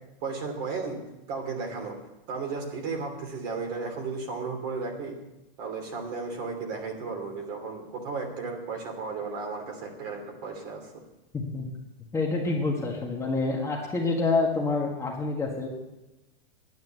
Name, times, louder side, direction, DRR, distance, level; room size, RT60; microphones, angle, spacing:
voice 1, 0.2-1.0 1.3-2.0 2.3-5.1 5.6-11.0, right 4 dB, 45° right, 3 dB, 2.9 m, -34 dB
voice 2, 11.3-11.7 12.1-15.7, left 3 dB, 10° left, -2 dB, 1.6 m, -27 dB
9.5 x 9.1 x 7.9 m, 1.0 s
supercardioid pair, 145°, 29 cm